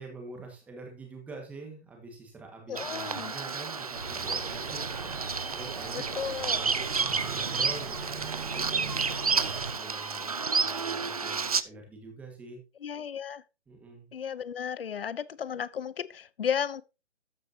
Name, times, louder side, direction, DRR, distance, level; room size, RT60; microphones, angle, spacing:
voice 1, 0.0-4.9 5.5-6.1 6.5-12.6 13.7-14.1, right 3 dB, 5° right, 1.6 m, -46 dB
voice 2, 2.7-3.3 5.9-6.6 12.8-13.4 14.1-16.8, left 8 dB, 55° left, 1.0 m, -34 dB
Bird vocalization bird call bird song, 2.7-11.6, right 5 dB, 35° right, 0.4 m, -31 dB
sound 1, 3.9-9.7, right 4 dB, 70° right, 4.7 m, -39 dB
13.5 x 6.5 x 2.8 m
hypercardioid pair, 165°, 34 cm